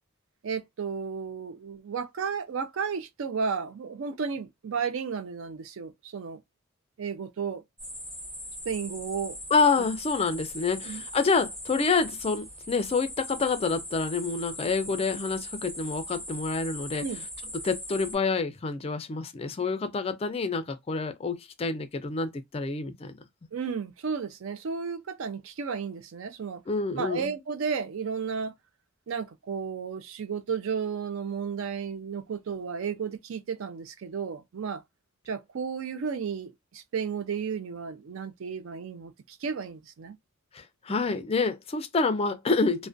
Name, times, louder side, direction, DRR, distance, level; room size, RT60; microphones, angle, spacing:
voice 1, 0.4-6.4 7.0-7.6 8.7-9.4 10.8-11.0 17.0-17.3 23.5-26.6 26.9-28.5 29.1-34.8 35.3-40.2 40.9-41.0, right 6 dB, 65° right, 0.4 m, -33 dB
sound 1, 7.8-18.1, equal, 15° right, 0.9 m, -40 dB
voice 2, 9.5-17.0 17.5-23.1 26.7-27.3 40.5-42.9, left 4 dB, 30° left, 0.3 m, -27 dB
2.4 x 2.1 x 2.5 m
head